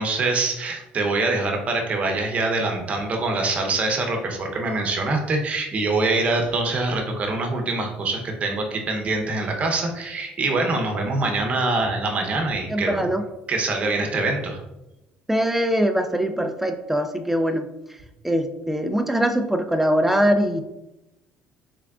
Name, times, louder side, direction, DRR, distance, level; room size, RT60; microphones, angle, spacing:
voice 1, 0.0-13.1 13.5-14.6, right 3 dB, 40° right, 2 dB, 0.8 m, -24 dB
voice 2, 12.7-13.2 15.3-17.7 18.2-20.6, equal, 5° right, 6 dB, 0.4 m, -22 dB
3.5 x 3.5 x 2.4 m, 0.94 s
cardioid pair, 100°, 4 cm